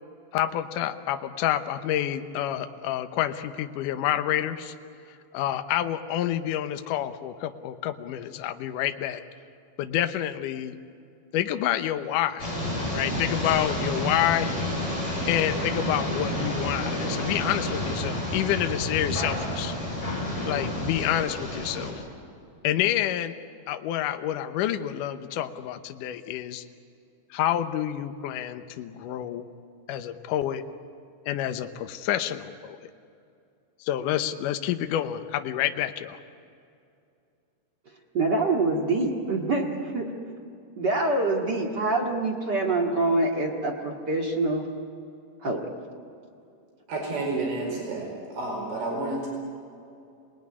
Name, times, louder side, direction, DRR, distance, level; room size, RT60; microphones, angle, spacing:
voice 1, 0.3-4.7 5.3-9.2 9.8-10.8 11.3-12.5 12.9-14.5 15.3-19.7 20.5-22.0 22.6-23.3 23.7-26.6 27.3-29.4 29.9-30.6 31.3-32.8 33.8-36.2, left 12 dB, 90° left, 8 dB, 1.8 m, -28 dB
sound 1, 12.4-21.9, left 1 dB, 15° left, 7.3 m, -30 dB
voice 2, 38.1-39.7 39.9-40.1 40.8-44.7 45.4-45.7, right 2 dB, 40° right, 0 dB, 1.6 m, -25 dB
voice 3, 46.9-49.3, right 2 dB, 75° right, -1 dB, 6.9 m, -30 dB
27.0 x 20.0 x 9.8 m, 2.5 s
omnidirectional pair, 5.1 m